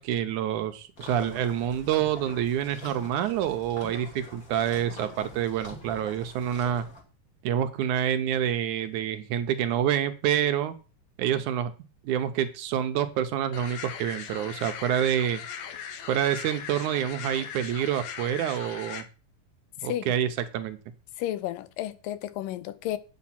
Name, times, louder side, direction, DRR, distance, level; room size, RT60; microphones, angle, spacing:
voice 1, 0.0-6.9 7.4-10.8 11.2-11.7 12.0-15.4 16.1-19.1 19.8-20.8, right 10 dB, 75° right, 2.1 m, -27 dB
sound 1, 1.0-7.0, left 2 dB, 30° left, 2.7 m, -44 dB
sound 2, 13.5-19.0, left 8 dB, 65° left, 2.0 m, -39 dB
voice 2, 19.8-20.1 21.2-23.0, left 13 dB, 90° left, 2.5 m, -32 dB
8.9 x 7.3 x 5.8 m
omnidirectional pair, 3.8 m